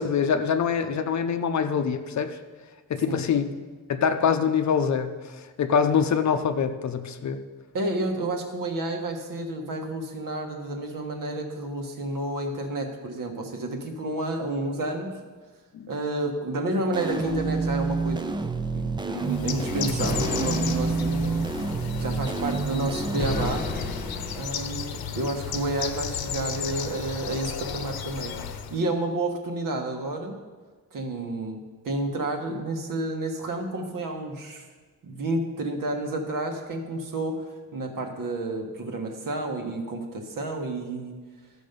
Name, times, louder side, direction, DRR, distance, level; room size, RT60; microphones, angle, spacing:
voice 1, 0.0-2.4 2.9-3.6 3.9-7.4 15.7-15.9, left 6 dB, 50° left, 8 dB, 0.6 m, -24 dB
voice 2, 7.7-15.1 15.9-18.3 18.7-21.4 21.7-23.6 24.3-28.4 28.7-30.3 30.9-34.6 35.0-41.1, right 2 dB, 60° right, 3 dB, 1.5 m, -30 dB
sound 1, 16.9-23.5, right 4 dB, 15° right, 0.3 m, -28 dB
Bird, 19.2-28.8, left 7 dB, 80° left, 0.8 m, -34 dB
sound 2, 20.0-21.4 23.2-24.6, left 2 dB, 25° left, 1.2 m, -32 dB
14.0 x 6.3 x 5.2 m, 1.4 s
wide cardioid pair, 170°, 36 cm